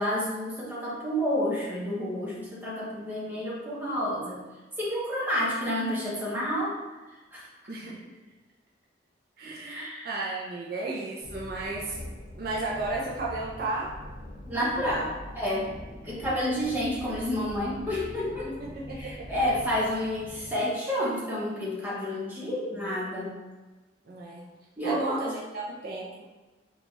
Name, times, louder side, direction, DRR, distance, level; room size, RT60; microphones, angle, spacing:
voice 1, 0.0-4.4 4.8-6.8 7.1-7.5 9.7-10.1 14.5-15.1 15.3-15.7 16.0-18.5 18.9-23.3 24.8-25.2, equal, 10° right, -7 dB, 0.9 m, -30 dB
voice 2, 7.7-8.1 9.4-12.0 12.4-13.9 14.5-15.1 18.4-19.3 24.1-24.5 24.8-26.3, right 2 dB, 50° right, -4 dB, 0.5 m, -34 dB
sound 1, 11.2-20.5, left 1 dB, 10° left, 1.1 m, -43 dB
4.0 x 2.4 x 3.0 m, 1.2 s
head